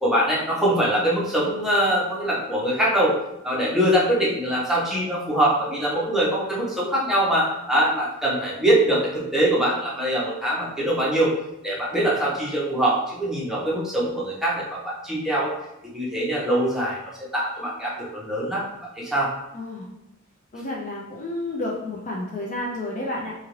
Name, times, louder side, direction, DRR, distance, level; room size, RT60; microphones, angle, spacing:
voice 1, 0.0-3.1 3.4-11.3 11.6-15.5 15.9-17.0 17.3-18.6 19.0-19.3, right 1 dB, ahead, -7 dB, 0.8 m, -23 dB
voice 2, 19.5-19.9 20.5-23.3, left 1 dB, 35° left, -3 dB, 0.4 m, -30 dB
2.9 x 2.5 x 2.9 m, 0.87 s
head